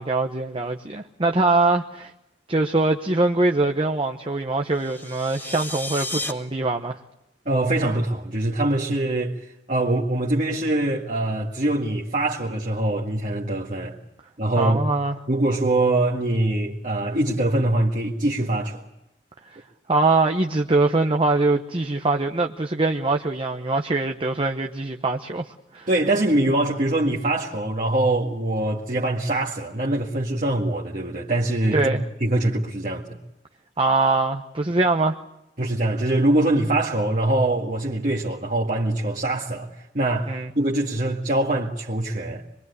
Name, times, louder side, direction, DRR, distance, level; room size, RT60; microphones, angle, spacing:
voice 1, 0.0-2.1 2.5-7.0 14.6-15.2 19.9-25.9 31.7-32.0 33.8-35.2 40.3-40.5, right 2 dB, 30° right, 1.0 m, -23 dB
sound 1, 4.7-6.3, left 2 dB, 15° left, 2.3 m, -32 dB
voice 2, 7.5-14.0 14.4-14.8 15.3-18.8 25.9-33.2 35.6-42.4, right 1 dB, 50° right, 2.0 m, -23 dB
26.0 x 23.0 x 8.2 m
head